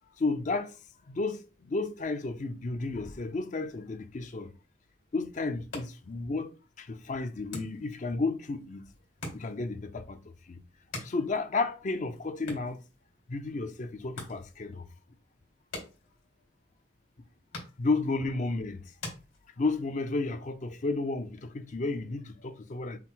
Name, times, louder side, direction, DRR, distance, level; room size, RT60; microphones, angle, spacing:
voice 1, 0.2-0.8 1.1-4.5 5.1-6.5 6.8-8.8 9.3-10.2 10.4-10.6 11.0-12.8 13.3-14.9 17.8-18.9 19.6-23.0, left 3 dB, 35° left, 0.4 m, -32 dB
sound 1, 5.5-20.0, left 2 dB, 70° left, 2.3 m, -48 dB
5.7 x 2.0 x 4.5 m
head